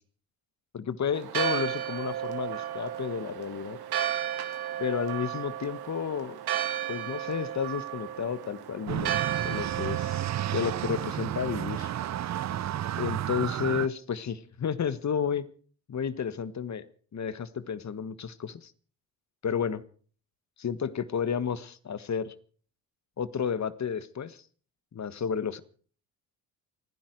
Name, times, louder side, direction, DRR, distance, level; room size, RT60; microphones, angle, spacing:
voice 1, 0.7-3.8 4.8-6.4 6.9-10.2 10.5-11.9 13.0-15.5 15.9-16.8 17.1-18.7 19.4-19.8 20.6-22.3 23.2-24.4 24.9-25.6, left 7 dB, 40° left, 15 dB, 1.5 m, -31 dB
Church bell, 1.1-12.7, right 11 dB, 60° right, 2.3 m, -34 dB
sound 1, 8.9-13.9, right 11 dB, 40° right, 0.7 m, -32 dB
29.5 x 10.5 x 4.7 m, 0.43 s
hypercardioid pair, 65°, 43 cm